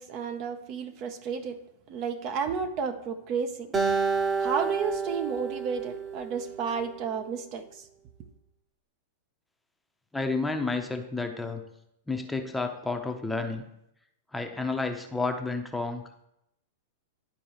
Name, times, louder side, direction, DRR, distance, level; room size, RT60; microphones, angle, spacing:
voice 1, 0.0-1.6 1.9-3.7 4.4-7.8, right 6 dB, 45° right, 8 dB, 0.7 m, -32 dB
Acoustic guitar, 3.7-7.1, right 5 dB, 25° right, 1.0 m, -30 dB
voice 2, 10.1-11.6 12.1-13.6 14.3-16.0, left 3 dB, 5° left, 5 dB, 0.7 m, -30 dB
11.5 x 4.5 x 3.0 m, 0.79 s
hypercardioid pair, 115°, 0 cm